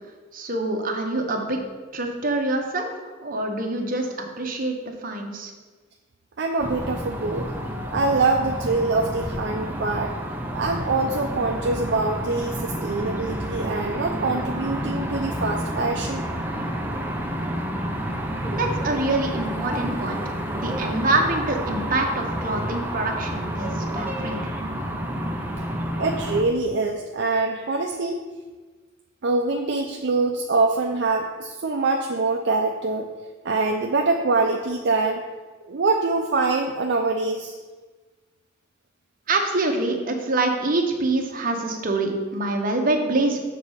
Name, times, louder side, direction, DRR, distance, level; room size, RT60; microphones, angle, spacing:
voice 1, 0.3-1.6 1.9-2.9 3.2-4.1 4.4-5.5 18.5-20.2 20.5-24.4 39.3-43.4, right 2 dB, 45° right, 2 dB, 1.0 m, -25 dB
voice 2, 6.4-7.5 7.9-10.1 10.5-16.3 26.0-28.2 29.2-33.1 33.4-35.2 35.7-37.5, right 3 dB, 60° right, 2 dB, 0.5 m, -24 dB
sound 1, 6.6-26.4, equal, 10° right, 0.7 m, -29 dB
6.9 x 4.1 x 6.4 m, 1.3 s
head